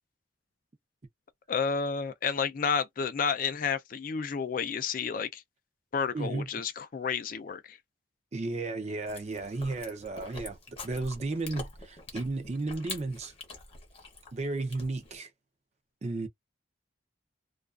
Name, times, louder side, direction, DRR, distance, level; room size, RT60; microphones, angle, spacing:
voice 1, 1.5-5.4 5.9-7.8, left 6 dB, 45° left, 0.3 m, -31 dB
voice 2, 6.1-6.5 8.3-10.6 10.8-13.3 14.3-15.3 16.0-16.3, right 2 dB, 35° right, 0.4 m, -33 dB
Chewing mastication, 9.1-15.2, left 3 dB, 30° left, 0.8 m, -45 dB
2.4 x 2.3 x 2.4 m
head